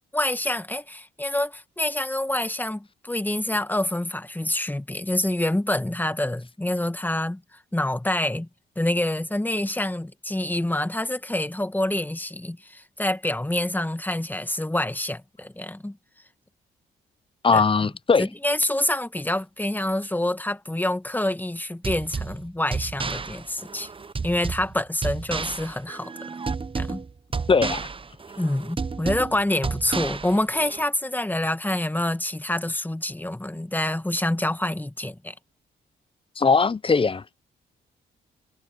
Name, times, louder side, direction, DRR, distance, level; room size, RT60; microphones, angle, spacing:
voice 1, 0.1-7.4 7.7-8.5 8.8-16.0 17.5-17.6 18.2-23.9 24.2-26.1 26.8-27.0 28.4-35.3, left 1 dB, 10° left, 1.8 m, -27 dB
voice 2, 17.4-18.3 27.5-27.9 36.4-37.2, left 4 dB, 25° left, 0.8 m, -20 dB
sound 1, 21.8-30.8, right 4 dB, 25° right, 0.9 m, -32 dB
supercardioid pair, 55°, 20 cm